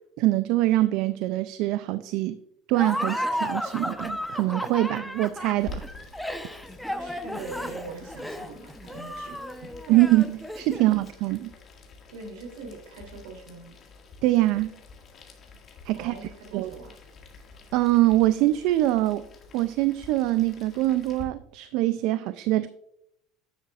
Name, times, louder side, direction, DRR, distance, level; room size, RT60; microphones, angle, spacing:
voice 1, 0.2-2.4 2.7-5.8 9.9-11.5 14.2-14.7 15.9-16.1 16.5-16.7 17.7-19.3 19.5-22.7, right 16 dB, 70° right, 13 dB, 0.3 m, -23 dB
Laughter, 2.7-11.0, equal, ahead, 0.7 m, -33 dB
Boiling, 5.6-21.2, left 3 dB, 40° left, 1.8 m, -48 dB
voice 2, 7.0-9.7 12.1-13.7 15.9-17.0, right 3 dB, 85° right, 1 dB, 2.9 m, -42 dB
10.0 x 7.6 x 2.4 m, 0.77 s
supercardioid pair, 100°, 0 cm